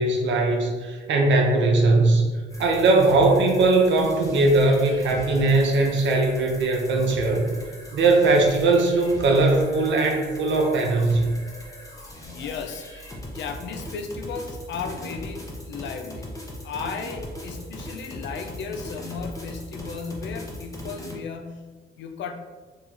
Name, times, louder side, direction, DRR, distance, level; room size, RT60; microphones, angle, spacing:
voice 1, 0.0-2.3 2.6-7.5 7.9-11.4, right 2 dB, 70° right, 1 dB, 0.7 m, -20 dB
sound 1, 2.5-21.2, equal, 15° left, 0.8 m, -40 dB
voice 2, 12.0-12.9 13.3-16.3 16.6-21.7 22.0-22.3, left 5 dB, 65° left, 5 dB, 0.5 m, -35 dB
2.9 x 2.8 x 3.7 m, 1.4 s
cardioid pair, 90°, 20 cm